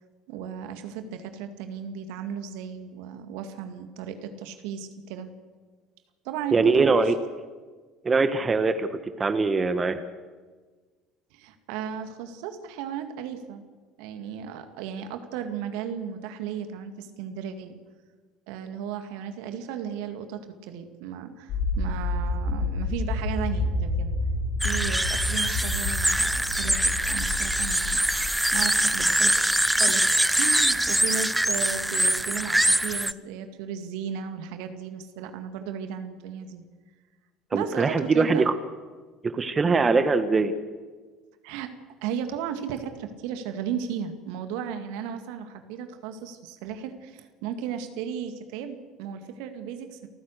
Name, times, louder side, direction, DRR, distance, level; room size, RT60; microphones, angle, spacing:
voice 1, 0.3-5.3 6.2-7.1 11.3-13.6 14.0-17.8 18.5-24.1 24.6-28.2 28.5-36.6 37.5-38.5 41.4-41.7 42.0-50.1, right 8 dB, 65° right, 7 dB, 2.0 m, -35 dB
voice 2, 6.5-7.1 8.0-10.0 37.5-38.5 39.3-40.5, right 4 dB, 25° right, 10 dB, 1.5 m, -22 dB
sound 1, 21.5-29.6, left 2 dB, 60° left, 5.1 m, -30 dB
sound 2, 24.6-33.1, right 1 dB, 5° right, 0.8 m, -24 dB
29.0 x 14.5 x 6.6 m, 1.4 s
hypercardioid pair, 65°, 0 cm